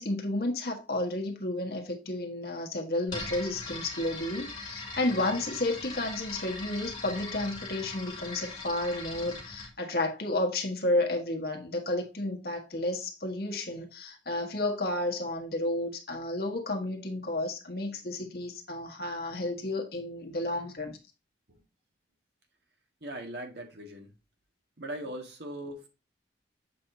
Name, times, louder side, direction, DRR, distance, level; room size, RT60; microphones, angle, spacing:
voice 1, 0.0-21.0, left 1 dB, 55° left, 1.5 m, -32 dB
sound 1, 3.1-9.7, left 3 dB, 25° left, 2.6 m, -40 dB
voice 2, 23.0-24.1 24.8-25.9, right 1 dB, 65° right, 1.9 m, -40 dB
7.6 x 5.6 x 2.8 m
head